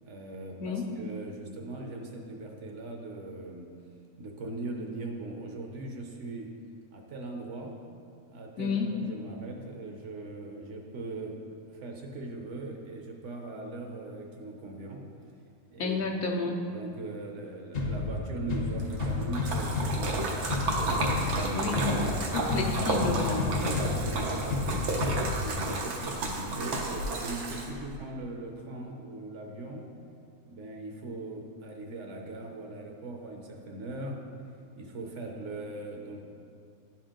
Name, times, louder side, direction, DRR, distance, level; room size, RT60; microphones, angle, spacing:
voice 1, 0.0-3.7 4.2-6.5 6.9-7.7 8.3-11.4 11.7-15.0 15.7-16.0 16.3-16.4 16.7-20.5 21.1-21.7 23.8-29.8 30.4-34.2 34.8-36.2, right 2 dB, 60° right, 1 dB, 1.1 m, -40 dB
voice 2, 8.6-8.9 15.8-16.6 21.5-23.5, left 4 dB, 80° left, 1 dB, 1.3 m, -31 dB
sound 1, 17.7-25.7, left 3 dB, 50° left, 0.9 m, -31 dB
Splash splatter, 18.8-27.9, right 2 dB, 85° right, 1.4 m, -32 dB
10.5 x 4.4 x 3.8 m, 2.4 s
omnidirectional pair, 1.5 m